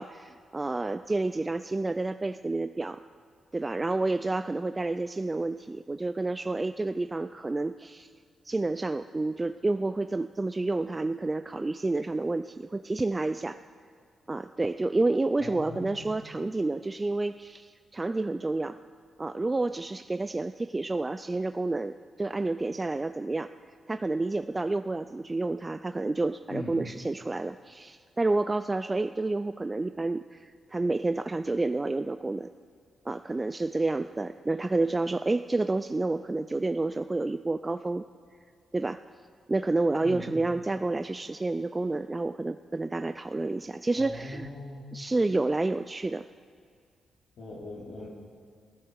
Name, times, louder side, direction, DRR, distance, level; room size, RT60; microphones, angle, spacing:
voice 1, 0.0-3.0 3.5-8.1 8.4-13.6 14.3-18.8 19.2-23.5 23.9-32.5 33.1-38.1 38.7-39.0 39.5-44.5 44.9-46.2, right 2 dB, 25° right, 10 dB, 0.4 m, -29 dB
voice 2, 15.4-16.1 26.5-26.8 40.0-40.3 43.9-44.9 47.4-48.1, left 1 dB, 70° left, -4 dB, 3.1 m, -40 dB
16.0 x 13.5 x 4.7 m, 2.2 s
cardioid pair, 65°, 0 cm